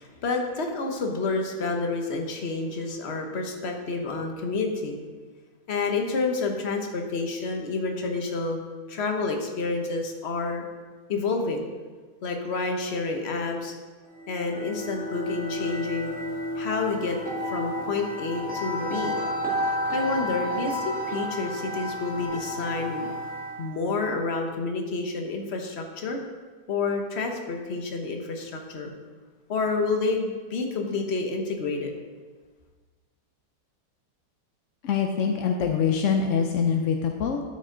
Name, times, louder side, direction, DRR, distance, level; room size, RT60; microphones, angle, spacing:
voice 1, 0.0-5.0 5.7-8.6 8.9-10.7 11.1-11.7 12.2-13.7 14.3-16.1 16.6-17.2 17.4-19.2 19.9-23.1 23.6-26.2 26.7-28.9 29.5-31.9, left 3 dB, 45° left, 3 dB, 1.0 m, -29 dB
sound 1, 14.2-23.7, equal, 5° right, 2.0 m, -31 dB
voice 2, 34.8-37.4, left 6 dB, 70° left, 3 dB, 0.7 m, -24 dB
12.0 x 5.5 x 3.8 m, 1.4 s
omnidirectional pair, 1.9 m